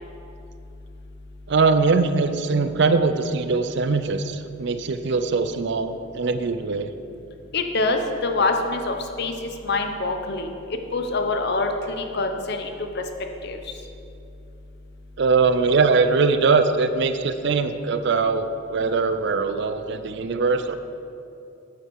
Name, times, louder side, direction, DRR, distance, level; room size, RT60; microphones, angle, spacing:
voice 1, 1.5-6.9 15.2-20.8, right 4 dB, 55° right, 10 dB, 0.4 m, -21 dB
voice 2, 7.5-9.3 9.6-10.5 10.9-13.0 13.4-13.6, left 3 dB, 50° left, 5 dB, 0.8 m, -25 dB
9.5 x 8.5 x 4.7 m, 2.7 s
head